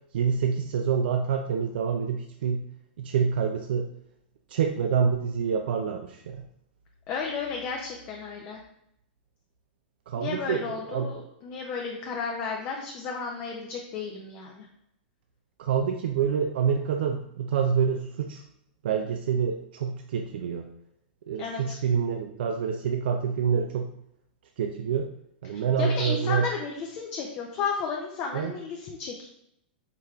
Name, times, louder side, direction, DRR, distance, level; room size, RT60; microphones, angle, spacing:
voice 1, 0.1-2.6 3.0-3.9 4.5-6.5 10.1-11.1 15.6-18.4 18.8-20.7 21.3-23.9 24.6-25.1 25.4-26.5 28.3-28.5, right 7 dB, 75° right, 5 dB, 0.3 m, -27 dB
voice 2, 7.1-8.6 10.2-14.6 21.4-21.8 25.5-29.3, left 5 dB, 35° left, 0 dB, 0.5 m, -33 dB
4.6 x 3.2 x 2.4 m, 0.77 s
hypercardioid pair, 125°, 6 cm